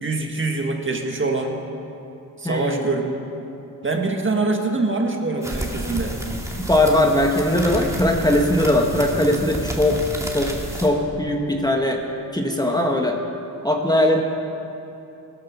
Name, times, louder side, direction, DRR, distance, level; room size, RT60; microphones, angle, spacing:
voice 1, 0.0-1.6 2.4-3.2 3.8-6.2, right 3 dB, 35° right, 3 dB, 1.7 m, -24 dB
voice 2, 2.4-2.8 6.7-10.0 10.3-10.5 10.8-12.0 12.3-13.2 13.6-14.2, left 1 dB, 10° left, 2 dB, 1.2 m, -20 dB
sound 1, 5.4-10.9, right 1 dB, 10° right, 2.2 m, -30 dB
16.5 x 13.5 x 5.9 m, 2.9 s
cardioid pair, 90°, 35 cm